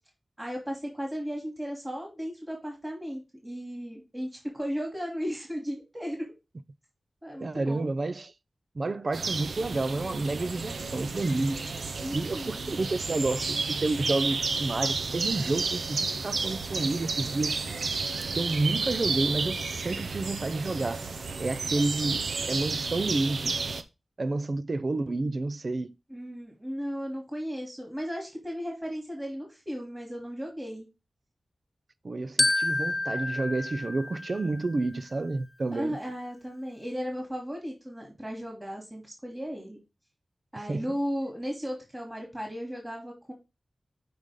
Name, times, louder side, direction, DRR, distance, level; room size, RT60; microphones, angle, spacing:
voice 1, 0.4-6.3 7.2-7.9 12.0-12.8 26.1-30.9 35.7-39.8 40.5-43.3, equal, 15° right, 3.0 m, -35 dB
voice 2, 7.4-8.3 8.8-11.7 12.1-17.6 18.3-21.0 21.4-22.2 22.5-23.6 24.2-26.0 32.0-36.0 40.6-40.8, right 2 dB, 50° right, 0.5 m, -30 dB
sound 1, 9.1-23.8, right 4 dB, 85° right, 0.7 m, -32 dB
Glockenspiel, 32.4-34.9, left 2 dB, 30° left, 0.7 m, -29 dB
7.9 x 5.1 x 3.7 m
wide cardioid pair, 80°, 0 cm